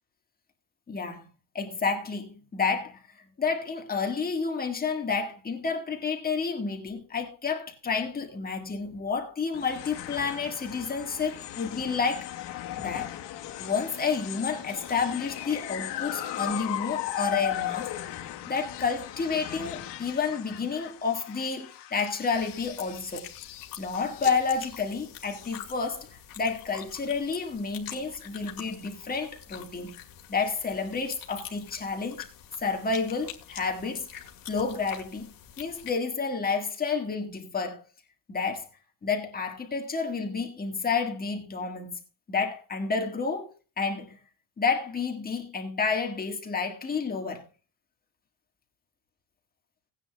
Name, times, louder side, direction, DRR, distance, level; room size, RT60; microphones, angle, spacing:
voice 1, 0.9-1.2 1.5-3.0 3.4-12.3 12.8-13.1 13.6-17.9 18.5-23.3 23.8-26.1 26.4-30.0 30.3-32.2 32.6-34.1 34.5-37.8 38.3-38.7 39.0-42.0 42.3-43.5 43.8-44.2 44.6-47.5, left 5 dB, 20° left, 1.6 m, -30 dB
sound 1, 9.5-26.0, left 13 dB, 75° left, 1.4 m, -38 dB
sound 2, 22.3-35.9, left 10 dB, 50° left, 2.0 m, -45 dB
17.5 x 9.8 x 2.3 m
cardioid pair, 175°, 43 cm